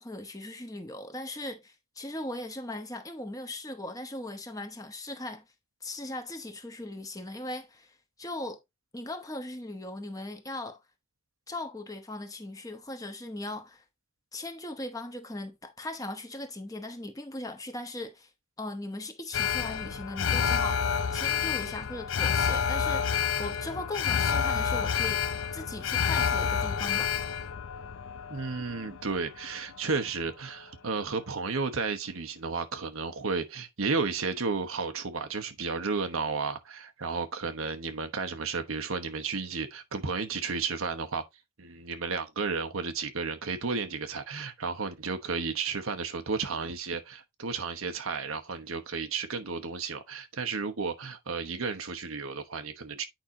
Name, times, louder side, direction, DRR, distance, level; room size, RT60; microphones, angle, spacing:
voice 1, 0.0-5.4 5.8-8.6 8.9-10.8 11.5-13.8 14.3-18.3 18.6-25.2 25.5-27.2, left 1 dB, 15° left, 1.0 m, -39 dB
Alarm, 19.3-29.6 29.9-30.0, left 7 dB, 75° left, 0.5 m, -29 dB
voice 2, 28.3-41.2 41.6-53.1, right 4 dB, 85° right, 1.0 m, -33 dB
8.9 x 5.0 x 2.8 m
head